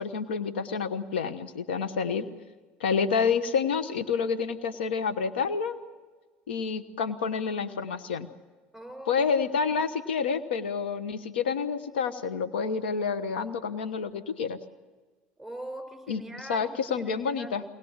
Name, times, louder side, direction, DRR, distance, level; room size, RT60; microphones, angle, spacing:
voice 1, 0.0-2.3 2.8-5.8 6.5-8.3 9.1-14.6 16.1-16.2 16.5-17.6, left 6 dB, 85° left, 12 dB, 1.2 m, -28 dB
voice 2, 8.7-9.2 9.5-9.8 15.4-17.7, right 1 dB, ahead, 6 dB, 5.3 m, -42 dB
23.0 x 20.5 x 7.3 m, 1.3 s
hypercardioid pair, 75°, 5 cm